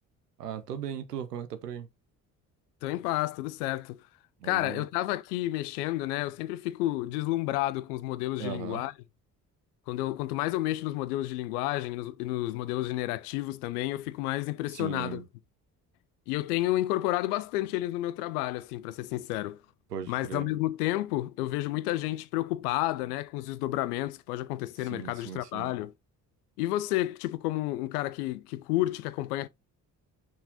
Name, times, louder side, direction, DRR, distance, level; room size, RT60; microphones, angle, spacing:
voice 1, 0.4-1.9 4.4-4.9 8.4-8.8 14.7-15.2 19.9-20.5 24.8-25.8, right 8 dB, 90° right, 0.8 m, -38 dB
voice 2, 2.8-4.0 4.4-8.9 9.9-15.2 16.3-19.6 20.1-25.9 26.6-29.5, left 16 dB, 75° left, 0.6 m, -31 dB
5.9 x 4.0 x 3.9 m
figure-of-eight pair, 45°, 46 cm